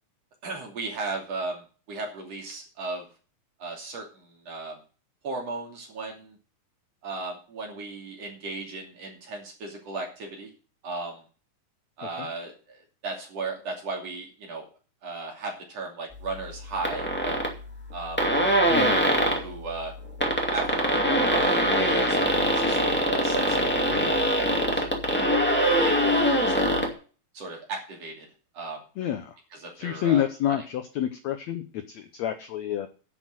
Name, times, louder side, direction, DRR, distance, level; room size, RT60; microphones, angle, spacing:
voice 1, 0.4-3.1 3.6-4.8 5.2-6.4 7.0-10.5 10.8-11.2 12.0-14.7 15.0-17.4 17.9-18.2 18.7-18.9 19.2-19.9 20.5-25.5 25.8-26.8 27.3-28.3 28.5-28.8 29.5-30.6, right 3 dB, 45° right, 1 dB, 3.6 m, -36 dB
sound 1, 16.8-17.5 17.9-18.0 18.2-19.4 20.0-26.9, equal, 5° left, 1.4 m, -23 dB
voice 2, 29.0-29.4 29.8-32.9, left 10 dB, 75° left, 9 dB, 1.6 m, -28 dB
10.5 x 6.2 x 7.7 m, 0.37 s
omnidirectional pair, 4.2 m